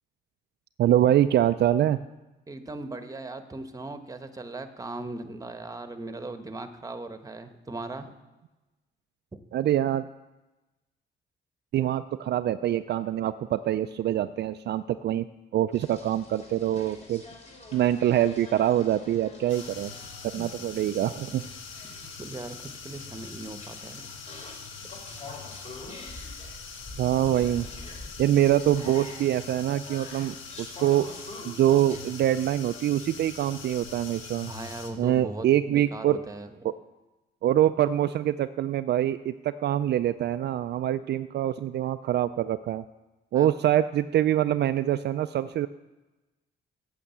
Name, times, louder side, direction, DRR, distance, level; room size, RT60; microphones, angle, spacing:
voice 1, 0.8-2.0 9.5-10.1 11.7-15.3 15.5-17.2 17.7-19.9 20.3-21.4 27.0-27.7 28.2-31.1 31.5-34.5 35.0-36.2 37.4-42.8 43.3-45.7, right 12 dB, 60° right, 10 dB, 0.4 m, -24 dB
voice 2, 2.5-8.1 21.8-24.1 24.8-24.9 34.5-36.5 43.3-43.5, right 2 dB, 15° right, 8 dB, 1.1 m, -39 dB
sound 1, 15.7-32.0, left 2 dB, 35° left, 3.0 m, -46 dB
sound 2, 19.5-34.9, left 5 dB, 75° left, 1.5 m, -43 dB
8.6 x 6.6 x 7.9 m, 1.1 s
cardioid pair, 90°, 20 cm